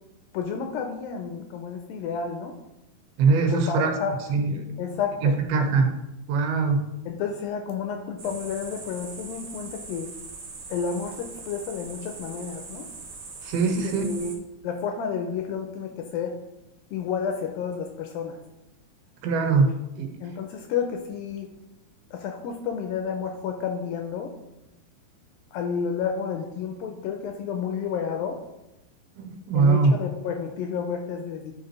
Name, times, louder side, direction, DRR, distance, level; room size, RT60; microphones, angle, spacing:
voice 1, 0.3-2.6 3.5-4.2 4.8-5.4 7.1-10.1 10.7-12.9 13.9-14.3 14.6-16.4 16.9-18.4 20.2-21.5 22.1-24.3 25.5-28.4 29.5-31.5, left 6 dB, 80° left, 4 dB, 2.2 m, -31 dB
voice 2, 3.2-3.9 4.3-4.8 5.2-5.9 6.3-6.8 13.4-14.0 19.2-20.1 29.2-29.9, right 4 dB, 80° right, 4 dB, 2.7 m, -22 dB
sound 1, 8.2-14.3, right 4 dB, 50° right, 1.8 m, -41 dB
10.5 x 5.3 x 3.2 m, 0.91 s
omnidirectional pair, 4.6 m